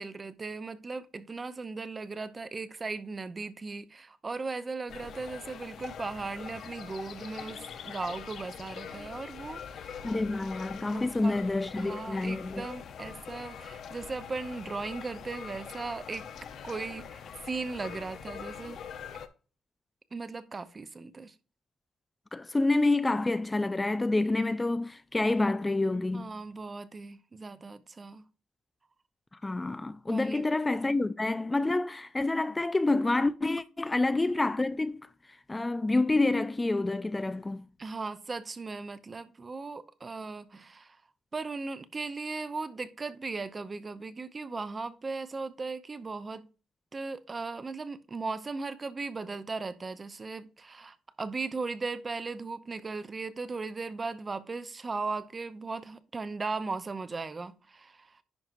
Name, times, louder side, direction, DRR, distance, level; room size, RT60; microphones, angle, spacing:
voice 1, 0.0-10.0 10.9-11.4 11.8-16.3 16.6-18.8 20.1-21.3 26.1-28.2 30.1-30.5 37.8-41.0 41.3-46.5 46.9-58.2, right 4 dB, 30° right, 0.7 m, -37 dB
sound 1, 4.9-19.3, left 7 dB, 65° left, 0.7 m, -43 dB
voice 2, 10.0-12.6 22.3-26.3 29.4-35.0 35.5-37.7, left 2 dB, 15° left, 0.3 m, -28 dB
10.5 x 4.4 x 2.6 m
cardioid pair, 90°, 0 cm